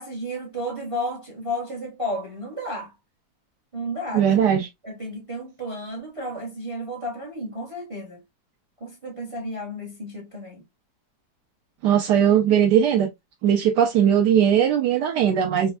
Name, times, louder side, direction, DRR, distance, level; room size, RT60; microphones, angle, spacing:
voice 1, 0.0-2.9 3.7-4.3 4.8-8.2 8.8-10.6, equal, 30° right, 0.6 m, -32 dB
voice 2, 4.1-4.7 11.8-13.1 13.4-15.7, right 9 dB, 75° right, 1.1 m, -19 dB
4.2 x 2.1 x 2.2 m
omnidirectional pair, 1.9 m